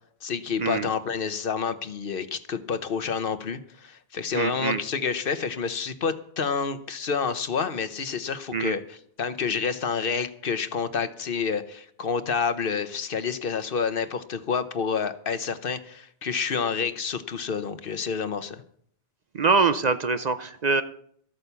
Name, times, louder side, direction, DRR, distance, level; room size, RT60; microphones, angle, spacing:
voice 1, 0.2-8.8 9.2-18.6, left 6 dB, 60° left, 12 dB, 1.0 m, -29 dB
voice 2, 4.3-4.8 8.5-8.8 19.3-20.8, right 4 dB, 50° right, 11 dB, 0.7 m, -24 dB
13.5 x 8.9 x 6.9 m, 0.65 s
omnidirectional pair, 1.0 m